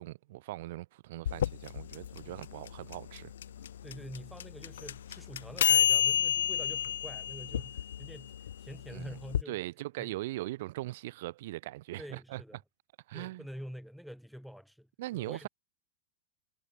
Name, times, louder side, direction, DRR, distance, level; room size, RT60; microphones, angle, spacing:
voice 1, 0.0-3.3 8.9-9.1 9.5-12.4 13.1-13.4 15.0-15.5, right 17 dB, 55° right, 2.3 m, -40 dB
sound 1, 1.3-9.4, left 10 dB, 65° left, 1.3 m, -30 dB
voice 2, 3.8-9.6 10.0-10.2 12.0-12.6 13.1-15.5, equal, ahead, 4.0 m, -47 dB
figure-of-eight pair, 90°, 0 cm